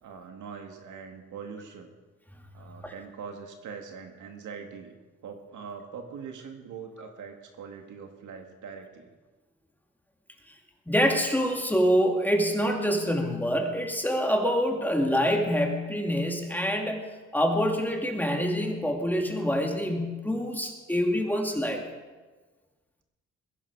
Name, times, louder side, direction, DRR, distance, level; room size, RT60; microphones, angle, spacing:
voice 1, 0.0-1.9 2.5-5.0 5.2-9.1, right 6 dB, 75° right, 4 dB, 2.2 m, -42 dB
voice 2, 10.9-17.0 17.3-21.8, equal, 5° left, 2 dB, 2.5 m, -26 dB
21.0 x 11.0 x 4.8 m, 1.3 s
cardioid pair, 90°, 30 cm